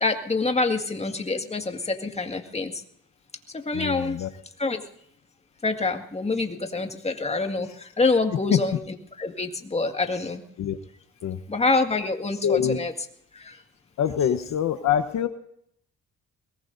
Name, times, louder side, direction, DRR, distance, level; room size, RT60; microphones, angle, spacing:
voice 1, 0.0-2.7 3.7-4.2 4.6-4.8 5.6-7.7 8.0-8.8 9.2-10.4 11.5-12.9, left 3 dB, 20° left, 5 dB, 2.0 m, -26 dB
voice 2, 3.7-4.3 8.5-8.6 10.6-10.8 11.2-11.4 12.4-12.8 14.0-15.3, left 9 dB, 70° left, 9 dB, 1.0 m, -24 dB
22.0 x 19.0 x 2.7 m, 0.69 s
cardioid pair, 90°, 30 cm